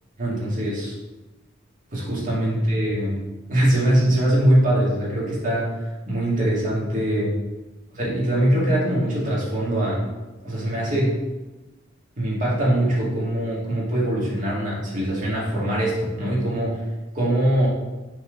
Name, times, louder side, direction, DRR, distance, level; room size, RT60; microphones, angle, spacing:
voice 1, 0.2-0.9 1.9-7.4 7.9-10.1 10.4-11.2 12.2-16.8 17.1-17.7, right 1 dB, 40° right, -6 dB, 2.2 m, -22 dB
5.9 x 3.9 x 5.2 m, 1.1 s
head